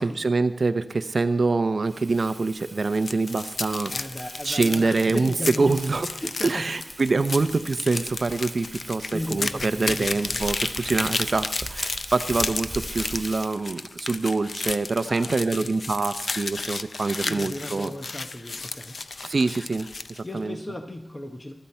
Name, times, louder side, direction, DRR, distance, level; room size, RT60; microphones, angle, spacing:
voice 1, 0.0-3.9 4.4-6.1 6.4-17.9 19.2-20.6, right 3 dB, 45° right, 10 dB, 0.6 m, -25 dB
Crumpling crinkling, 1.8-13.5, right 1 dB, 15° right, 2.4 m, -41 dB
sound 1, 2.8-20.2, left 3 dB, 50° left, 0.6 m, -33 dB
voice 2, 3.9-6.7 9.1-10.5 15.1-15.7 17.2-19.0 20.2-21.5, left 1 dB, 20° left, 5 dB, 1.0 m, -35 dB
21.0 x 13.0 x 4.3 m, 0.86 s
wide cardioid pair, 125°, 0 cm